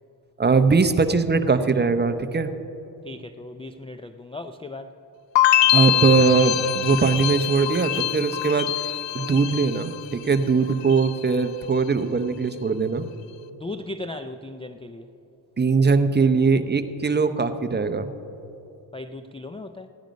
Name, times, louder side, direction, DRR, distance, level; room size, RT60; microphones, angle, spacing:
voice 1, 0.4-2.5 5.7-8.8 9.1-13.1 15.6-18.1, right 4 dB, 20° right, 10 dB, 0.7 m, -21 dB
voice 2, 3.0-5.0 13.6-15.1 18.9-19.9, left 2 dB, 15° left, 9 dB, 0.4 m, -37 dB
sound 1, 5.4-10.4 10.7-11.3, left 13 dB, 70° left, 0.5 m, -24 dB
15.5 x 10.5 x 5.2 m, 3.0 s
cardioid pair, 85°, 46 cm